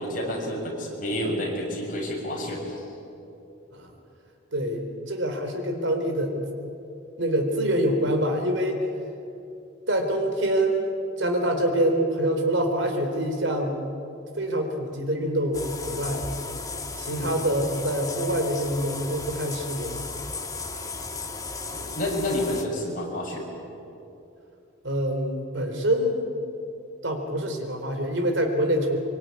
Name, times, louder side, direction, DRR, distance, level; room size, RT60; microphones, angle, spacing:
voice 1, 0.0-2.8 17.1-17.3 21.7-23.5, left 1 dB, 45° left, -2 dB, 6.9 m, -29 dB
voice 2, 4.5-6.4 7.2-8.8 9.9-13.8 14.4-16.3 17.0-20.1 24.8-26.3 27.0-29.0, right 1 dB, 75° right, 4 dB, 3.9 m, -25 dB
sound 1, 15.5-22.6, left 3 dB, 20° left, 1.7 m, -35 dB
24.5 x 24.0 x 9.7 m, 2.8 s
head